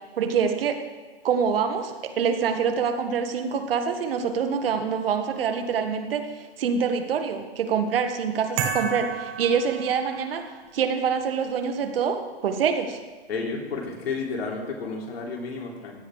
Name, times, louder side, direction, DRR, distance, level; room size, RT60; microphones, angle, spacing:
voice 1, 0.2-0.8 1.2-6.3 6.6-13.0, right 6 dB, 65° right, 6 dB, 1.7 m, -25 dB
sound 1, 8.6-10.5, right 7 dB, 25° right, 1.4 m, -31 dB
voice 2, 13.3-16.0, left 4 dB, 75° left, 0 dB, 3.4 m, -31 dB
16.0 x 10.5 x 4.9 m, 1.4 s
hypercardioid pair, 155°, 31 cm